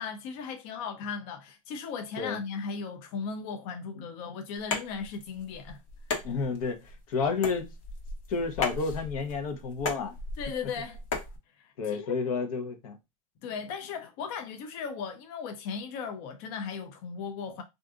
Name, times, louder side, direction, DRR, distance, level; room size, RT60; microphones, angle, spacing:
voice 1, 0.0-5.8 10.4-11.0 11.6-12.2 13.4-17.6, left 6 dB, 50° left, 0.5 m, -37 dB
sound 1, 4.6-11.4, left 4 dB, 65° left, 1.0 m, -36 dB
voice 2, 6.2-6.8 7.1-7.7 8.3-10.1 11.8-13.0, left 4 dB, 80° left, 0.8 m, -30 dB
3.7 x 2.5 x 2.4 m
supercardioid pair, 150°, 18 cm